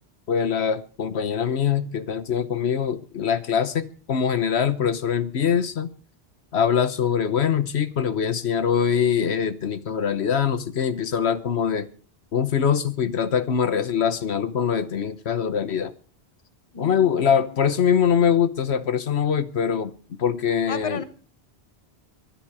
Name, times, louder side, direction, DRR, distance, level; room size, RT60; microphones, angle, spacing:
voice 1, 0.3-5.9 6.5-11.9 12.3-15.9 16.8-21.0, left 7 dB, 75° left, 1.2 m, -23 dB
voice 2, 16.7-17.6 20.7-21.0, left 5 dB, 30° left, 1.1 m, -34 dB
23.0 x 10.5 x 4.8 m
omnidirectional pair, 1.1 m